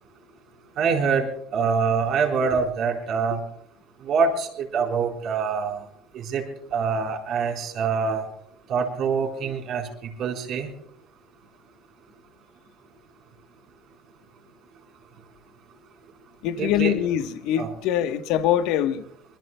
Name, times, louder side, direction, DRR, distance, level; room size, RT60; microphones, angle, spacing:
voice 1, 0.8-1.3 1.5-3.4 4.0-5.8 6.3-6.4 6.7-8.2 8.7-9.8 10.2-10.7 16.6-16.9 17.6-17.7, right 5 dB, 50° right, 4.1 m, -24 dB
voice 2, 16.4-19.0, left 11 dB, 70° left, 1.1 m, -23 dB
25.0 x 21.5 x 2.2 m
cardioid pair, 125°, 0 cm